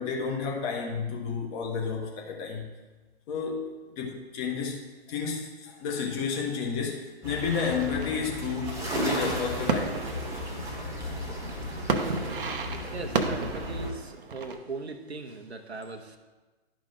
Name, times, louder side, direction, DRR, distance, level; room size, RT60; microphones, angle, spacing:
voice 1, 0.0-2.7 3.3-3.7 3.9-10.0, left 5 dB, 25° left, 0 dB, 1.3 m, -31 dB
sound 1, 7.2-13.9, left 1 dB, 10° right, 1.2 m, -34 dB
sound 2, 7.5-14.6, right 4 dB, 55° right, 0.8 m, -34 dB
voice 2, 12.7-16.2, right 3 dB, 80° right, 4 dB, 0.9 m, -39 dB
11.5 x 5.1 x 3.7 m, 1.2 s
figure-of-eight pair, 120°, 32 cm